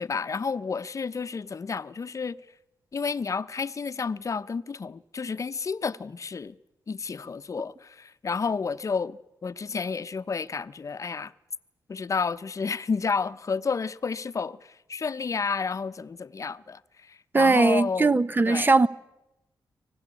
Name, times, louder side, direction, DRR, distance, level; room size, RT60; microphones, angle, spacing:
voice 1, 0.0-2.4 2.9-6.6 6.9-11.3 11.9-16.8 17.1-18.1 18.5-18.7, left 5 dB, 45° left, 0.9 m, -31 dB
voice 2, 17.3-18.9, right 3 dB, 25° right, 1.0 m, -20 dB
25.0 x 18.5 x 8.4 m
cardioid pair, 80°, 8 cm